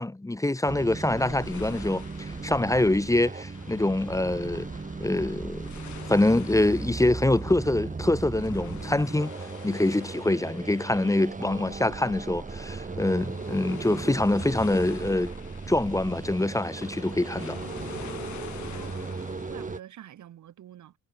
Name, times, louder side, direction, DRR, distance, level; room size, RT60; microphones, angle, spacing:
voice 1, 0.0-4.7 5.0-5.7 6.1-9.3 9.6-15.3 15.7-17.6, left 2 dB, 10° left, 1.3 m, -25 dB
sound 1, 0.7-19.8, right 4 dB, 25° right, 3.3 m, -37 dB
sound 2, 1.2-19.8, left 11 dB, 70° left, 5.2 m, -48 dB
voice 2, 18.6-21.0, right 11 dB, 70° right, 7.8 m, -48 dB
cardioid pair, 90°, 30 cm